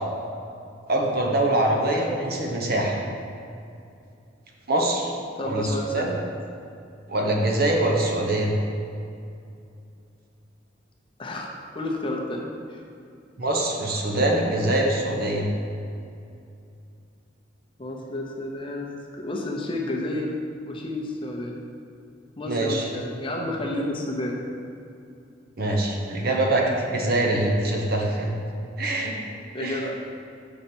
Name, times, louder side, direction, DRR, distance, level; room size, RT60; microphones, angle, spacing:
voice 1, 0.9-3.0 4.7-5.1 5.4-6.2 7.1-8.5 13.4-15.5 22.5-22.9 25.6-28.3 28.8-29.1 29.6-29.9, right 1 dB, 55° right, 0 dB, 0.9 m, -24 dB
voice 2, 5.4-6.1 11.2-11.5 11.7-12.4 12.7-12.8 17.8-18.9 19.2-20.3 20.7-21.6 22.4-24.4 29.5-29.9, left 1 dB, 30° left, -1 dB, 0.8 m, -30 dB
6.6 x 5.2 x 4.4 m, 2.5 s
head